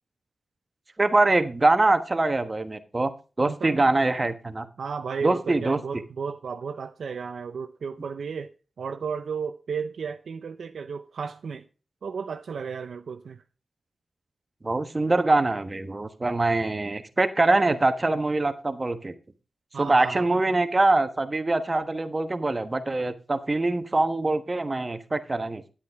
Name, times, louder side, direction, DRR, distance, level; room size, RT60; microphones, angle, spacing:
voice 1, 1.0-3.1 3.4-4.7 5.2-5.8 14.6-19.1 19.8-25.6, right 2 dB, 35° right, 1.2 m, -23 dB
voice 2, 3.4-3.8 4.8-8.5 8.8-11.6 12.0-13.4 19.7-20.3, right 6 dB, 75° right, 0.5 m, -34 dB
9.8 x 8.4 x 3.5 m
cardioid pair, 45°, 0 cm